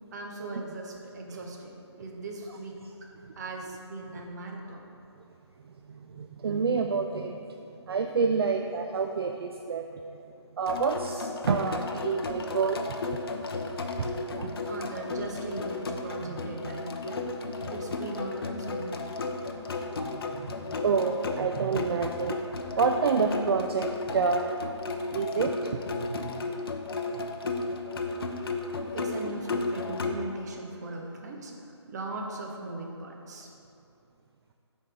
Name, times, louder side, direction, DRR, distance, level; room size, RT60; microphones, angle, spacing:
voice 1, 0.1-1.7 2.0-2.8 3.4-4.8 14.6-17.2 17.7-19.0 19.9-20.1 28.9-31.5 31.9-33.5, right 2 dB, 35° right, 1 dB, 0.9 m, -38 dB
voice 2, 6.2-7.4 7.9-9.8 10.6-12.8 14.0-14.1 14.4-14.5 16.3-16.4 20.1-20.5 20.8-22.4 22.8-24.4 25.1-25.5 26.1-26.5, right 5 dB, 55° right, 4 dB, 0.4 m, -28 dB
sound 1, 10.7-30.2, left 3 dB, 55° left, 0.6 m, -34 dB
6.5 x 4.4 x 5.0 m, 2.8 s
hypercardioid pair, 160°, 15 cm